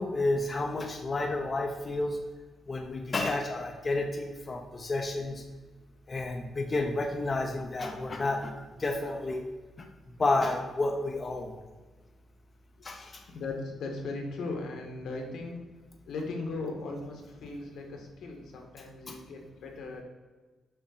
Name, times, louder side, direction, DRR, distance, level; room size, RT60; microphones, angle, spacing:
voice 1, 0.0-2.2 2.7-5.4 6.1-8.5 8.8-9.4 10.2-11.5 12.8-13.2, left 2 dB, 25° left, 2 dB, 0.8 m, -30 dB
voice 2, 13.3-15.6 16.1-20.0, left 3 dB, 80° left, 2 dB, 1.7 m, -38 dB
7.6 x 5.8 x 4.1 m, 1.3 s
cardioid pair, 150°, 0 cm